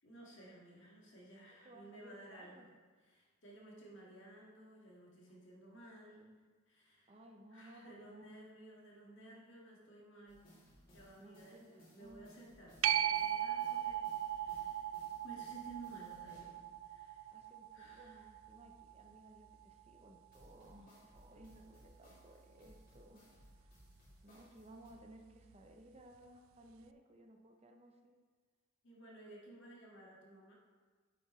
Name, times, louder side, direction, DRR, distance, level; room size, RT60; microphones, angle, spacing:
voice 1, 0.0-2.6 3.0-7.2 7.5-10.5 10.9-17.3 17.7-18.2 28.8-30.5, right 2 dB, 60° left, -3 dB, 1.9 m, -56 dB
voice 2, 1.6-2.7 7.1-8.3 11.2-12.3 17.3-23.3 23.5-23.8 24.2-28.2, right 1 dB, 30° right, 3 dB, 0.6 m, -59 dB
sound 1, 10.3-16.6 20.3-24.9, equal, 45° left, 2.5 m, -63 dB
sound 2, 12.8-20.0 25.5-25.6, right 11 dB, 75° right, 0.3 m, -39 dB
9.3 x 7.1 x 3.2 m, 1.4 s
head